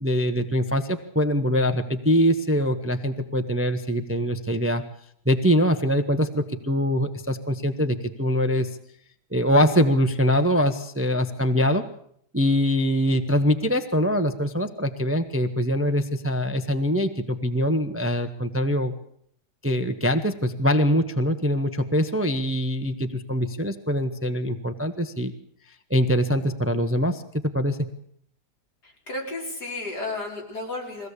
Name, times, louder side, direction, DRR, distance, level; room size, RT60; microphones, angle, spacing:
voice 1, 0.0-4.9 5.2-8.7 9.3-11.9 12.3-18.9 19.6-25.3 25.9-27.2 27.5-27.8, equal, 10° right, 8 dB, 0.9 m, -23 dB
voice 2, 29.1-31.1, left 2 dB, 65° left, 0 dB, 5.5 m, -32 dB
22.5 x 16.5 x 8.3 m, 0.68 s
omnidirectional pair, 1.8 m